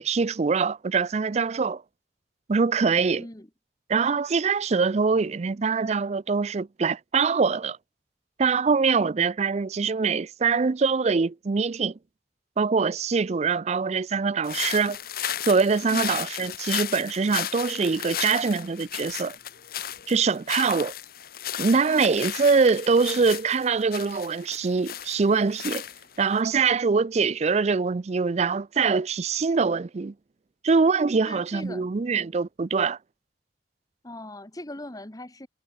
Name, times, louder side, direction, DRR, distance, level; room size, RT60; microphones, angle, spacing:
voice 1, 0.0-1.8 2.5-3.2 3.9-7.8 8.4-11.9 12.6-15.0 15.5-19.4 20.1-20.9 21.6-25.8 26.2-30.1 30.6-33.0, right 5 dB, 40° right, 0.4 m, -23 dB
voice 2, 3.1-3.5 15.8-16.2 31.3-31.9 34.0-35.5, left 1 dB, 20° left, 1.5 m, -40 dB
sound 1, 14.4-26.4, left 10 dB, 55° left, 1.2 m, -34 dB
head